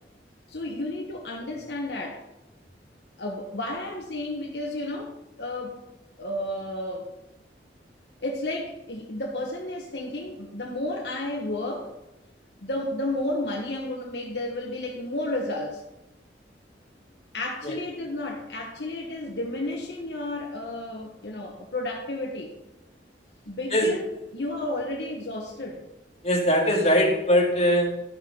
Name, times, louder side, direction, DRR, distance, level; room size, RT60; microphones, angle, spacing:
voice 1, 0.5-2.2 3.2-5.8 6.2-7.2 8.2-11.9 12.6-15.8 17.3-22.5 23.5-24.1 24.3-25.8, left 1 dB, 70° left, 0 dB, 1.2 m, -32 dB
voice 2, 26.2-28.0, equal, 40° left, -2 dB, 2.2 m, -21 dB
12.5 x 6.0 x 3.9 m, 0.92 s
head